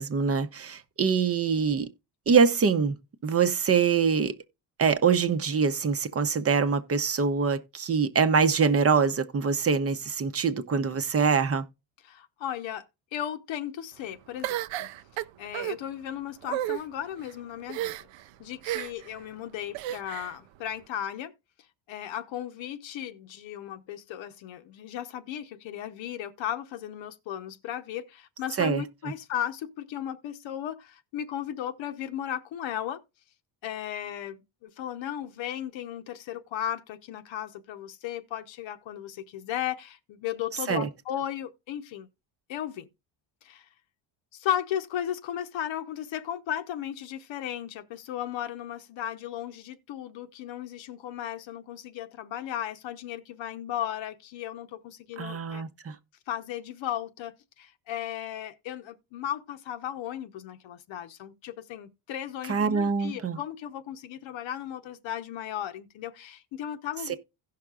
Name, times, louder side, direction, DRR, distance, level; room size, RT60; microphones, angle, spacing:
voice 1, 0.0-1.9 2.3-3.0 3.2-4.3 4.8-11.6 28.6-28.8 40.7-40.9 55.2-55.9 62.5-63.4 67.1-67.2, right 6 dB, 30° right, 0.7 m, -24 dB
voice 2, 12.0-12.8 13.1-14.9 15.4-18.0 18.4-21.3 21.9-33.0 33.6-42.1 42.5-42.9 43.4-43.7 44.3-55.6 56.3-67.2, left 10 dB, 70° left, 0.9 m, -35 dB
sound 1, 14.4-15.8 16.4-16.8 17.7-18.2 18.6-19.1 19.7-20.3, right 14 dB, 70° right, 0.6 m, -32 dB
16.5 x 5.8 x 2.4 m
cardioid pair, 125°, 48 cm